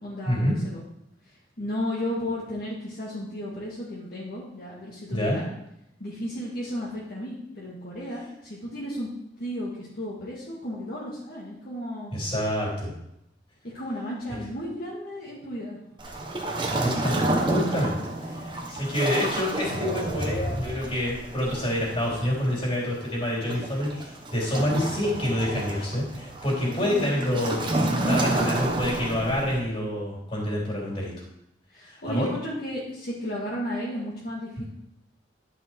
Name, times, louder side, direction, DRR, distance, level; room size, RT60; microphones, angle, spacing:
voice 1, 0.0-0.8 1.2-5.5 6.0-9.1 9.4-12.1 13.7-15.8 24.6-24.8 26.6-28.3 31.7-34.6, equal, 55° left, -7 dB, 2.0 m, -34 dB
voice 2, 12.1-12.9 16.8-27.6 28.1-31.1 31.9-32.3 34.6-34.7, left 1 dB, 30° left, -5 dB, 3.8 m, -27 dB
Waves surf, 16.0-29.6, right 1 dB, 30° right, 1.3 m, -30 dB
11.0 x 5.7 x 4.6 m, 0.81 s
head